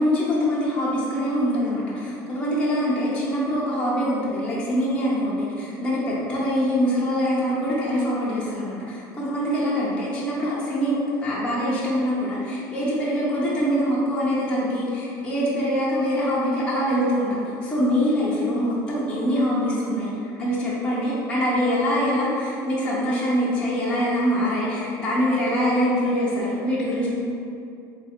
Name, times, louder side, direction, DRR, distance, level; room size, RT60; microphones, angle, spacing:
voice 1, 0.0-27.1, equal, 10° left, -8 dB, 0.5 m, -24 dB
3.4 x 2.4 x 4.2 m, 2.6 s
cardioid pair, 170°, 8 cm